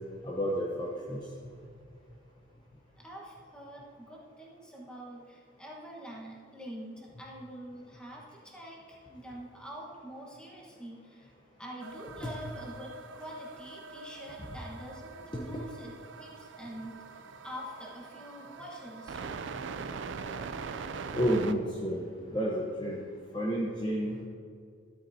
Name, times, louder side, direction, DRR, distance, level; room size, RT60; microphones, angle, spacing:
voice 1, 0.2-1.2 12.2-12.3 14.4-14.6 15.3-15.6 21.1-22.0 22.3-23.0 23.3-24.2, equal, 20° left, -4 dB, 0.8 m, -31 dB
voice 2, 3.0-11.3 11.6-19.2, equal, 5° left, -3 dB, 1.3 m, -45 dB
sound 1, 11.8-21.5, right 4 dB, 70° right, 0.4 m, -42 dB
12.5 x 8.4 x 2.8 m, 2.3 s
head